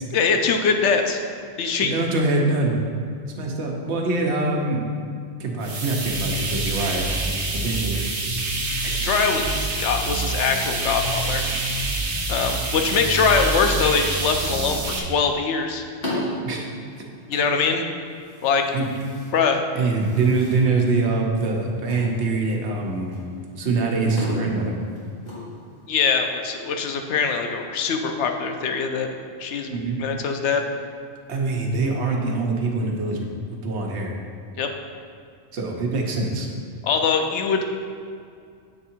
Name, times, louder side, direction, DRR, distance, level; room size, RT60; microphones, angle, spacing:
voice 1, 0.1-1.2 1.6-1.9 9.0-11.4 12.3-15.8 17.3-17.8 18.4-18.7 19.3-19.6 25.9-30.6 34.6-34.7 36.8-37.6, left 5 dB, 85° left, 4 dB, 0.9 m, -23 dB
voice 2, 1.8-2.8 3.4-4.8 5.4-7.1 7.5-8.0 8.8-9.1 16.4-16.7 18.7-18.9 19.7-23.2 23.6-24.8 29.7-30.0 31.3-34.2 35.5-36.5, right 3 dB, 75° right, 0 dB, 1.1 m, -24 dB
sound 1, 5.6-15.0, right 2 dB, 55° right, 0.9 m, -26 dB
sound 2, 15.3-26.1, left 1 dB, 60° left, 1.8 m, -37 dB
7.7 x 3.6 x 4.3 m, 2.3 s
omnidirectional pair, 1.2 m